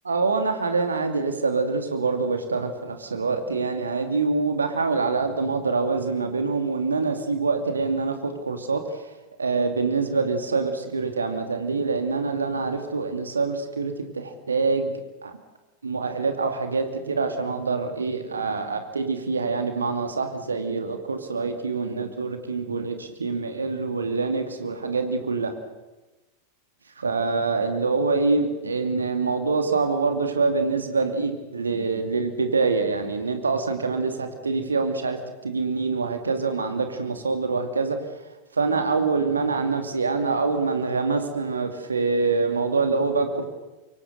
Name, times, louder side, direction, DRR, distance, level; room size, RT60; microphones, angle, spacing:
voice 1, 0.1-8.8 9.4-14.9 15.2-15.3 15.8-25.5 27.0-38.0 38.5-43.4, right 4 dB, 75° right, 7 dB, 2.6 m, -25 dB
26.5 x 23.5 x 6.8 m, 1.1 s
figure-of-eight pair, 90°, 0 cm